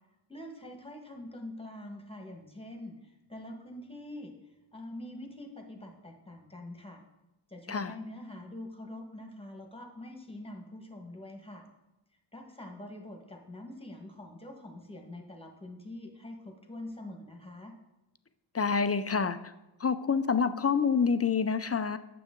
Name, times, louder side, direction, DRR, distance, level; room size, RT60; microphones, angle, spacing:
voice 1, 0.3-4.3 4.7-7.0 7.5-11.7 12.3-17.7, left 1 dB, 10° left, 2 dB, 1.4 m, -45 dB
voice 2, 18.5-19.5 19.8-22.0, left 5 dB, 30° left, 12 dB, 0.4 m, -27 dB
8.9 x 7.0 x 3.7 m, 0.96 s
wide cardioid pair, 60°, 48 cm